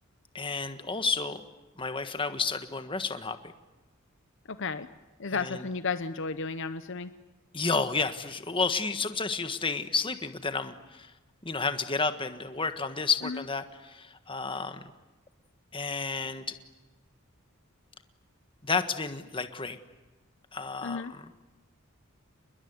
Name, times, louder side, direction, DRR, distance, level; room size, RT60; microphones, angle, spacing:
voice 1, 0.3-1.4 1.8-3.4 5.3-5.6 7.5-11.1 11.4-14.8 15.7-16.4 18.6-19.8 20.5-21.2, left 4 dB, 25° left, 9 dB, 1.5 m, -31 dB
voice 2, 4.5-4.9 5.2-7.1 13.2-13.4 20.8-21.1, left 4 dB, 60° left, 11 dB, 0.9 m, -33 dB
29.0 x 21.0 x 9.5 m, 1.1 s
head